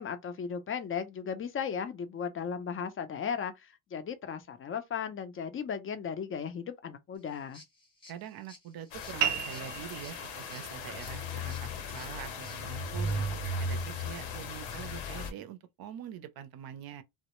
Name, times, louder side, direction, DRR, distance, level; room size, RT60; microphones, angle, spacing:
voice 1, 0.0-7.6, left 7 dB, 30° left, 0.4 m, -36 dB
sound 1, 7.2-12.6, left 2 dB, 10° left, 0.8 m, -56 dB
voice 2, 8.1-13.3 13.6-17.0, right 10 dB, 50° right, 0.5 m, -44 dB
sound 2, 8.9-15.3, left 2 dB, 85° left, 0.8 m, -36 dB
sound 3, 9.2-14.2, right 8 dB, 90° right, 0.7 m, -38 dB
2.1 x 2.0 x 2.9 m
cardioid pair, 100°, 47 cm